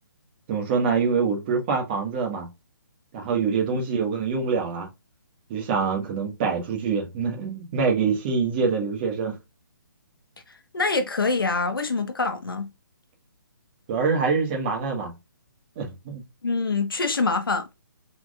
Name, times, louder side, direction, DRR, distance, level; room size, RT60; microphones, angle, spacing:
voice 1, 0.5-2.5 3.1-4.9 5.5-9.4 13.9-15.1 15.8-16.2, right 5 dB, 30° right, 1.7 m, -25 dB
voice 2, 10.7-12.7 16.4-17.7, left 3 dB, 90° left, 1.3 m, -25 dB
4.6 x 4.3 x 2.5 m
hypercardioid pair, 155°, 11 cm